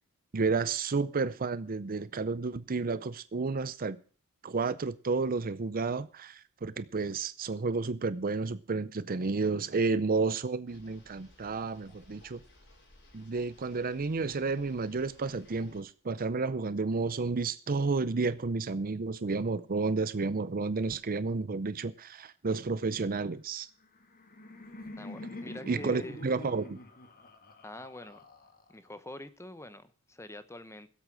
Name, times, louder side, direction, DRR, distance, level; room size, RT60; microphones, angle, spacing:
voice 1, 0.3-4.0 4.4-12.4 13.1-23.7 25.7-26.8, right 4 dB, 40° right, 0.6 m, -31 dB
sound 1, 10.6-15.8, left 1 dB, 55° left, 4.7 m, -59 dB
Laughter, 23.8-28.9, left 1 dB, 40° left, 1.7 m, -46 dB
voice 2, 25.0-26.2 27.6-28.3 28.7-30.9, left 1 dB, 10° left, 1.0 m, -45 dB
17.0 x 8.1 x 6.2 m
head